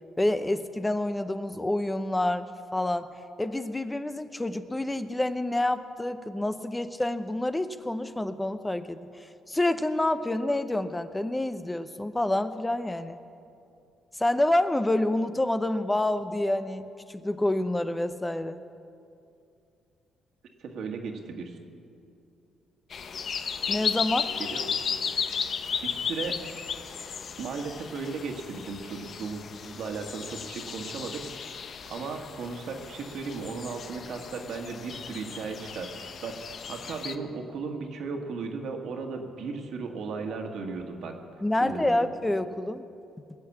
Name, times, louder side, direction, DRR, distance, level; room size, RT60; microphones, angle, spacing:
voice 1, 0.2-3.1 3.4-13.2 14.1-18.6 23.7-24.3 41.4-42.8, left 1 dB, 15° left, 10 dB, 0.7 m, -28 dB
voice 2, 20.6-21.6 24.4-24.7 25.8-26.4 27.4-31.2 31.5-31.6 31.9-41.1 41.6-42.0, right 4 dB, 70° right, 2 dB, 1.8 m, -36 dB
sound 1, 22.9-37.1, left 6 dB, 55° left, 0.8 m, -35 dB
20.0 x 8.1 x 7.3 m, 2.5 s
cardioid pair, 75°, 0 cm